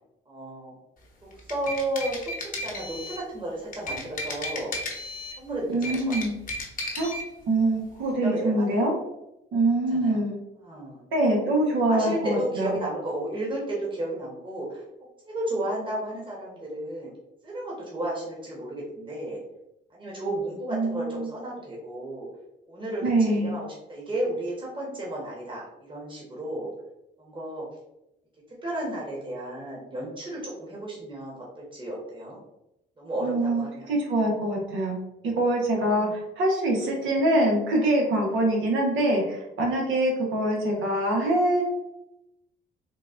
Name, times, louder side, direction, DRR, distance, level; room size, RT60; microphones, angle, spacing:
voice 1, 0.3-0.7 1.5-4.7 5.4-6.2 8.2-8.8 9.9-10.2 10.6-11.1 11.9-14.8 15.2-17.1 17.4-19.4 19.9-22.3 22.7-23.0 23.4-26.7 27.2-27.7 28.6-32.4 33.0-33.9 35.8-36.1, right 1 dB, 25° right, -4 dB, 1.1 m, -33 dB
sound 1, 1.3-3.3 3.7-5.4 5.7-7.3, left 1 dB, 45° left, 0.8 m, -34 dB
voice 2, 5.7-6.4 6.9-7.1 7.5-8.9 9.5-10.4 11.1-12.8 20.7-21.3 23.0-23.6 33.2-35.0 35.2-41.6, right 1 dB, 80° right, 0 dB, 1.0 m, -24 dB
3.9 x 2.3 x 2.5 m, 0.88 s
cardioid pair, 90°, 20 cm